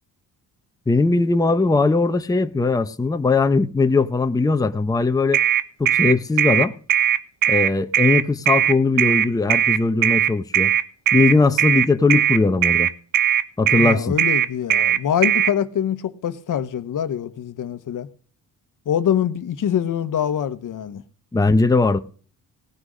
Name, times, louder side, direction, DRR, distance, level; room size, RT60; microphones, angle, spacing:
voice 1, 0.9-5.4 5.8-6.7 7.5-10.7 11.1-12.9 13.6-14.1 21.3-22.0, left 3 dB, 10° left, 0.7 m, -19 dB
sound 1, 5.3-15.5, right 10 dB, 65° right, 1.1 m, -18 dB
voice 2, 13.8-18.1 18.9-21.0, left 9 dB, 60° left, 1.1 m, -24 dB
18.0 x 6.2 x 6.2 m
cardioid pair, 115°, 36 cm